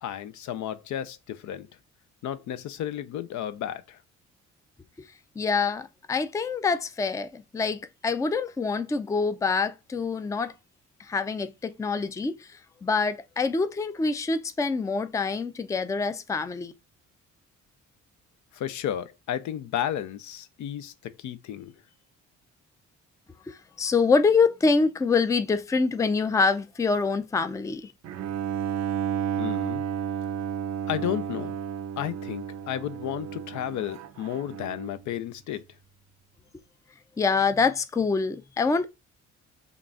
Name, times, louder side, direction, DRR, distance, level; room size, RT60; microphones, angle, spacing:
voice 1, 0.0-1.7 2.2-4.0 18.5-21.7 29.4-29.9 30.9-31.6 32.0-35.7, left 11 dB, 70° left, 0.5 m, -33 dB
voice 2, 5.4-10.5 11.0-16.7 23.5-27.9 37.2-38.9, left 4 dB, 10° left, 0.4 m, -25 dB
Bowed string instrument, 28.0-35.1, right 9 dB, 65° right, 0.6 m, -32 dB
3.8 x 2.4 x 3.7 m
cardioid pair, 90°, 30 cm